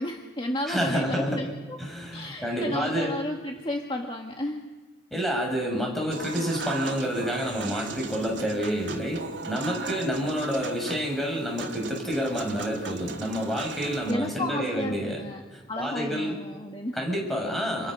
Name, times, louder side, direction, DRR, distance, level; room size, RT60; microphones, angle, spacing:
voice 1, 0.0-1.8 2.1-4.7 14.1-15.4 15.7-17.1, left 1 dB, 30° left, 2 dB, 1.8 m, -33 dB
voice 2, 0.7-1.5 1.8-3.2 5.1-16.3 16.9-17.9, equal, ahead, -1 dB, 6.6 m, -29 dB
Human voice / Acoustic guitar / Piano, 6.1-14.1, right 4 dB, 75° right, 2.7 m, -38 dB
29.5 x 29.5 x 6.4 m, 1.3 s
head